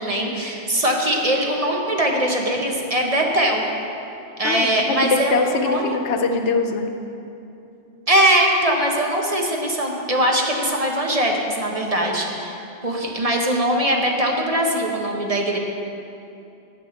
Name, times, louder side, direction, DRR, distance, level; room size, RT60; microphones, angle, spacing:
voice 1, 0.0-3.6 4.4-5.9 8.1-12.6 12.8-15.6, right 1 dB, 35° right, 0 dB, 1.1 m, -21 dB
voice 2, 5.0-6.9 12.0-12.1, left 4 dB, 90° left, 5 dB, 1.1 m, -22 dB
9.8 x 5.8 x 7.9 m, 2.7 s
omnidirectional pair, 1.1 m